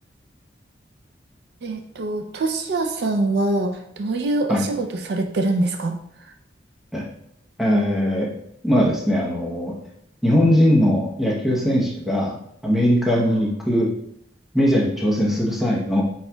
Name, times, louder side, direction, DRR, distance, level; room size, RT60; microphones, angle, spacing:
voice 1, 1.6-5.9 13.1-13.3, right 2 dB, 60° right, 4 dB, 0.4 m, -24 dB
voice 2, 7.6-8.3 8.6-9.7 10.2-12.4 12.6-13.9 14.5-16.0, equal, ahead, -3 dB, 0.8 m, -20 dB
4.8 x 4.3 x 2.2 m, 0.72 s
head